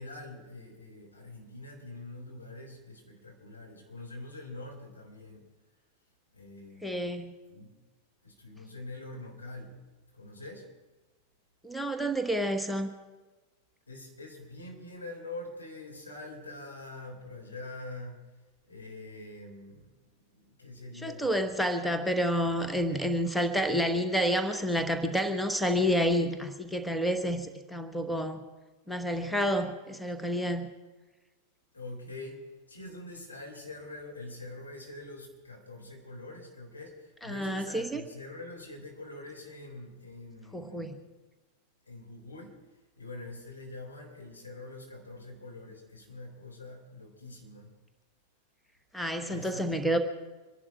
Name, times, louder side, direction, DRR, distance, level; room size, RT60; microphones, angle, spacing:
voice 1, 0.0-5.4 6.3-7.1 7.5-7.7 8.2-9.8 10.1-10.7 13.9-18.2 18.7-21.5 31.7-41.0 41.9-42.6 43.0-47.7 49.3-49.8, left 2 dB, 80° left, 0 dB, 3.8 m, -45 dB
voice 2, 6.8-7.3 11.6-12.9 20.9-28.4 28.9-30.7 37.2-38.0 40.5-41.0 48.9-50.0, equal, ahead, 7 dB, 1.2 m, -29 dB
25.5 x 11.5 x 4.7 m, 1.2 s
figure-of-eight pair, 90°, 0 cm